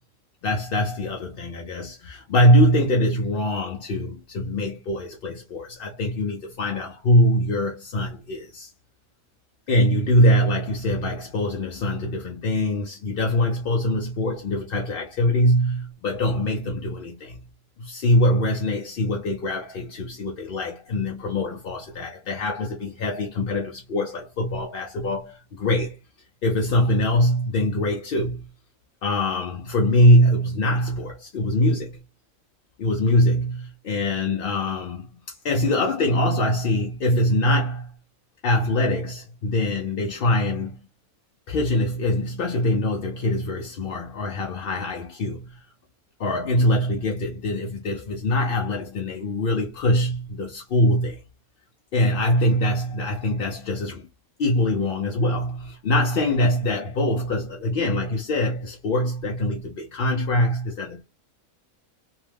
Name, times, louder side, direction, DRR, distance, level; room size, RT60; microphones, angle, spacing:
voice 1, 0.4-8.7 9.7-17.4 17.8-26.0 26.4-28.5 29.0-32.0 32.8-37.9 38.4-40.8 41.5-45.6 46.2-51.2 51.9-54.1 54.4-61.0, left 1 dB, 65° left, 0.6 m, -23 dB
2.7 x 2.2 x 3.2 m
omnidirectional pair, 1.5 m